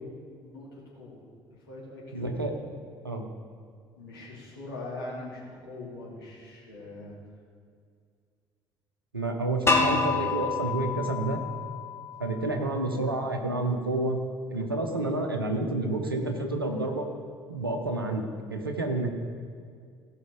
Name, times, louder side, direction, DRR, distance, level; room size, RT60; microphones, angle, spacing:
voice 1, 0.4-2.3 4.0-7.1, left 2 dB, 80° left, -6 dB, 2.7 m, -42 dB
voice 2, 2.1-2.5 3.0-3.3 9.1-11.4 12.2-14.2 14.5-17.1 17.5-19.1, right 2 dB, 90° right, 4 dB, 0.9 m, -29 dB
sound 1, 9.7-12.6, left 4 dB, 20° left, 1.7 m, -28 dB
16.5 x 5.7 x 4.8 m, 2.2 s
figure-of-eight pair, 55°, 12 cm